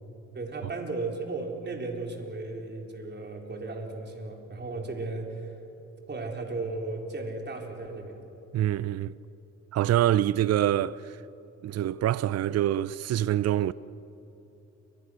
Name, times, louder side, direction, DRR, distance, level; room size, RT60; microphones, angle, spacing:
voice 1, 0.3-5.6 6.1-8.2, right 3 dB, 35° right, 4.1 m, -35 dB
voice 2, 8.5-9.1 9.7-11.2 11.6-13.7, right 12 dB, 55° right, 0.6 m, -25 dB
29.0 x 24.0 x 6.4 m
cardioid pair, 90°, 30 cm